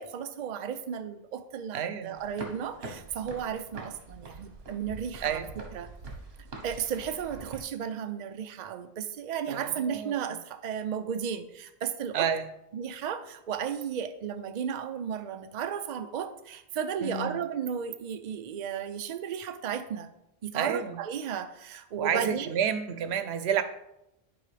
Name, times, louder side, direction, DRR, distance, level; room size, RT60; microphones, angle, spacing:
voice 1, 0.0-5.9 6.6-12.3 12.7-20.1 20.4-22.5, right 8 dB, 55° right, 9 dB, 0.6 m, -34 dB
voice 2, 1.7-2.2 5.2-5.4 9.5-10.2 12.1-12.4 17.0-17.4 20.5-21.0 22.0-23.6, right 8 dB, 90° right, 11 dB, 0.9 m, -30 dB
sound 1, 2.2-7.6, right 3 dB, 70° right, 1.3 m, -44 dB
10.5 x 4.8 x 3.3 m, 0.85 s
omnidirectional pair, 1.1 m